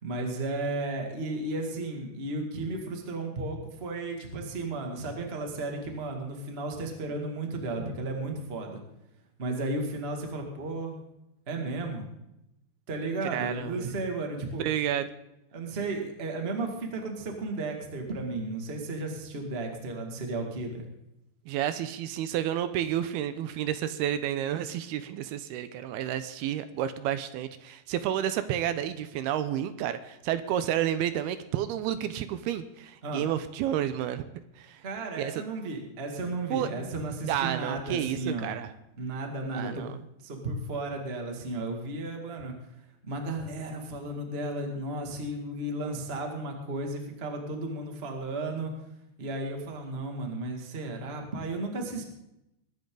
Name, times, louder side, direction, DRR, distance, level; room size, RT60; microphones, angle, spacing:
voice 1, 0.0-8.8 9.4-11.0 11.5-12.1 12.9-14.6 15.5-20.9 33.0-33.2 34.8-38.5 39.0-39.8 40.2-42.5 43.0-48.7 49.2-52.0, right 2 dB, 35° right, 2 dB, 1.0 m, -34 dB
voice 2, 13.2-13.9 14.6-15.1 21.5-34.3 34.6-34.8 35.2-35.4 36.5-36.7 37.3-38.7 39.5-40.0, right 11 dB, 80° right, 12 dB, 2.5 m, -30 dB
21.5 x 11.0 x 3.8 m, 0.87 s
omnidirectional pair, 4.7 m